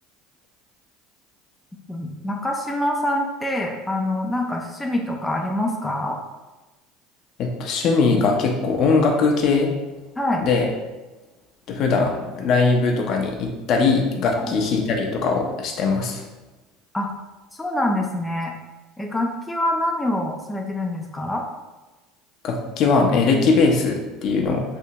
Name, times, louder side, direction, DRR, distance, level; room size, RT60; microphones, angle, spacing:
voice 1, 1.9-6.2 10.2-10.4 16.9-17.1 17.6-18.5 19.0-21.4, left 1 dB, 10° left, 1 dB, 0.4 m, -25 dB
voice 2, 7.4-9.7 10.4-10.7 11.7-16.2 22.4-24.6, left 4 dB, 55° left, 1 dB, 0.7 m, -20 dB
3.3 x 2.8 x 2.8 m, 1.1 s
supercardioid pair, 90°, 0 cm